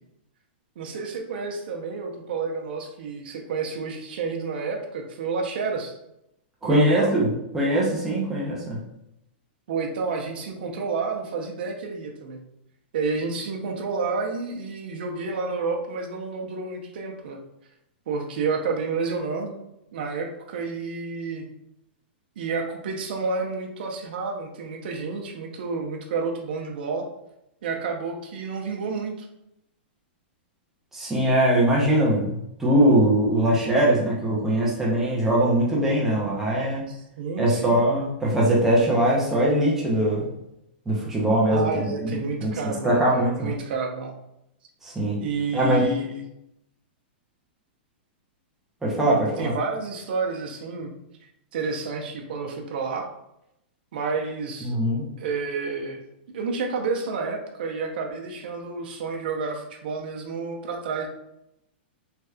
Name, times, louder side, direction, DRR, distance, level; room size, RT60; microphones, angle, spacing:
voice 1, 0.8-5.9 6.6-7.1 9.7-12.4 12.9-17.4 18.1-19.5 19.9-21.5 22.4-27.1 27.6-29.3 36.9-37.8 41.5-44.1 45.2-46.3 49.4-50.9 51.5-53.1 53.9-54.8 55.2-56.0 56.3-61.1, right 4 dB, 60° right, 2 dB, 0.7 m, -30 dB
voice 2, 6.6-7.3 7.5-8.8 30.9-36.8 37.4-40.2 40.9-43.5 44.8-45.2 45.5-45.9 48.8-49.5 54.6-55.1, right 1 dB, 5° right, -5 dB, 0.6 m, -22 dB
3.2 x 2.9 x 2.3 m, 0.82 s
hypercardioid pair, 165°, 6 cm